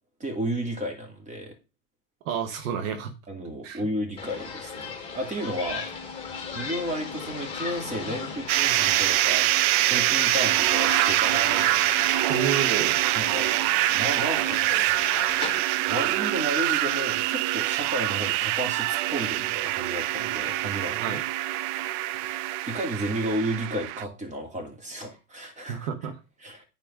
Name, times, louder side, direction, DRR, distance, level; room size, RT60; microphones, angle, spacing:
voice 1, 0.2-1.6 3.3-5.9 6.5-9.5 9.8-11.8 13.1-13.5 13.9-15.0 15.9-21.2 22.2-25.9 26.4-26.6, right 1 dB, 15° right, 3 dB, 2.9 m, -33 dB
voice 2, 2.2-3.1 3.6-3.8 12.3-13.0 21.0-21.2 25.7-26.2, right 7 dB, 70° right, 7 dB, 1.5 m, -30 dB
sound 1, 4.2-15.6, left 5 dB, 15° left, 2.9 m, -37 dB
sound 2, 8.5-24.0, right 16 dB, 55° right, 0.6 m, -24 dB
9.2 x 4.5 x 5.5 m, 0.30 s
supercardioid pair, 110°, 41 cm